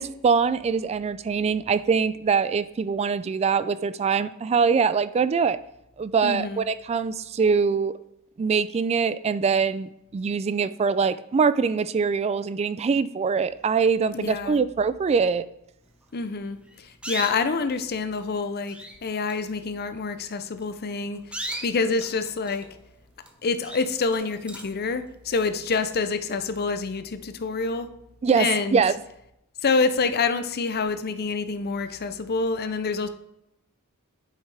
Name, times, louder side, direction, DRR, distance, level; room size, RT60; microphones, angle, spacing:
voice 1, 0.0-5.6 6.0-8.0 8.4-15.5 28.2-28.9, right 5 dB, 30° right, 15 dB, 0.3 m, -23 dB
voice 2, 6.2-6.6 14.1-14.6 16.1-18.8 19.0-21.2 21.6-22.7 23.4-27.9 28.4-28.8 29.6-33.1, left 4 dB, 45° left, 10 dB, 0.6 m, -27 dB
sound 1, 16.6-17.6 18.3-18.4 18.6-19.0 19.2-19.5 20.4-20.6 21.1-22.8 23.2-23.3 23.6-24.8, right 1 dB, 5° right, 0.8 m, -37 dB
8.3 x 5.6 x 3.4 m, 0.81 s
head